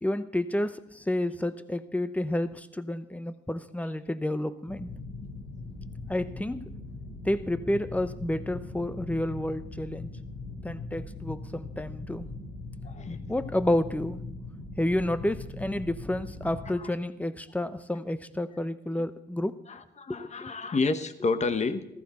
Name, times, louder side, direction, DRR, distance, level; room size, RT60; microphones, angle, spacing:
voice 1, 0.0-4.9 6.1-6.7 7.2-10.1 10.6-12.3 13.3-14.2 14.8-19.6 20.1-20.5, left 1 dB, 5° left, 12 dB, 0.8 m, -30 dB
sound 1, 4.7-16.7, left 3 dB, 70° left, 3.9 m, -40 dB
voice 2, 12.8-13.3 16.8-16.9 18.9-19.0 19.7-21.9, left 4 dB, 35° left, 10 dB, 1.1 m, -30 dB
14.5 x 14.5 x 4.3 m, 0.79 s
cardioid pair, 90°, 20 cm